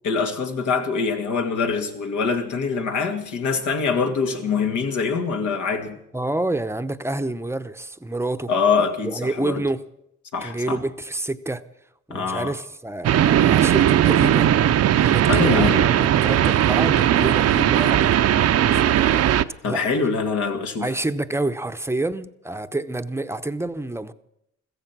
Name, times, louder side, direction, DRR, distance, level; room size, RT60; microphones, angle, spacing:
voice 1, 0.0-6.0 8.5-9.6 10.3-10.8 12.1-12.5 15.3-16.6 19.6-20.9, left 5 dB, 75° left, 2.4 m, -24 dB
voice 2, 6.1-8.5 9.0-9.8 10.4-11.6 12.1-14.5 14.9-15.7 16.0-19.4 19.6-19.8 20.8-24.1, right 2 dB, 10° right, 0.8 m, -28 dB
sound 1, 13.0-19.4, right 11 dB, 55° right, 0.7 m, -18 dB
15.5 x 15.0 x 6.1 m
cardioid pair, 90°, 30 cm